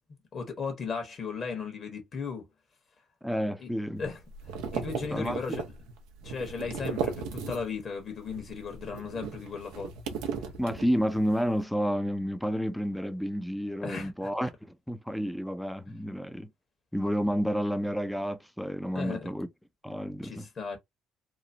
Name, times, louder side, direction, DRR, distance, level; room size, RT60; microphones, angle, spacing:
voice 1, 0.3-2.5 3.6-3.7 4.0-4.2 4.5-5.6 6.2-9.9 13.8-14.1 18.9-19.3 20.2-20.8, left 5 dB, 45° left, 1.2 m, -36 dB
voice 2, 3.2-4.0 5.1-5.6 10.6-16.5 16.9-19.5 19.8-20.5, equal, ahead, 0.5 m, -30 dB
sound 1, 4.0-7.9 8.2-11.3, right 6 dB, 90° right, 0.5 m, -36 dB
2.9 x 2.0 x 2.6 m
cardioid pair, 95°, 0 cm